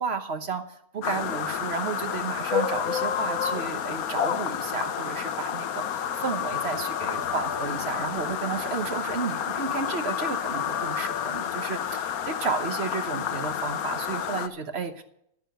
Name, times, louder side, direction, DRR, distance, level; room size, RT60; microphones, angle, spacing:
voice 1, 0.0-15.0, right 5 dB, 50° right, 8 dB, 1.3 m, -32 dB
sound 1, 1.0-14.5, left 9 dB, 85° left, 1.2 m, -30 dB
11.0 x 9.6 x 6.5 m, 0.74 s
omnidirectional pair, 1.5 m